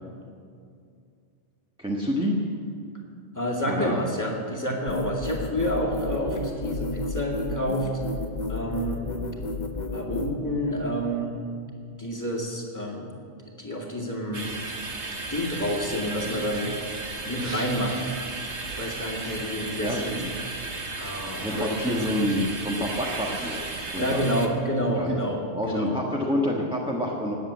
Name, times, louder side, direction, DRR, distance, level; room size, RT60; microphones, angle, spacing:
voice 1, 1.8-2.4 3.6-4.0 19.8-20.5 21.4-23.6 23.9-24.2 24.8-25.1 25.6-27.4, left 1 dB, 5° right, -3 dB, 1.4 m, -28 dB
voice 2, 3.3-7.9 8.5-9.0 9.9-11.4 12.0-13.1 13.4-14.5 15.3-16.8 17.3-18.1 18.8-20.2 21.0-22.0 24.0-26.0, equal, 15° left, -2 dB, 2.3 m, -29 dB
sound 1, 4.9-10.3, left 3 dB, 40° left, 1.3 m, -31 dB
sound 2, 14.3-24.5, right 3 dB, 70° right, 1.7 m, -34 dB
20.0 x 8.0 x 8.6 m, 2.4 s
omnidirectional pair, 1.2 m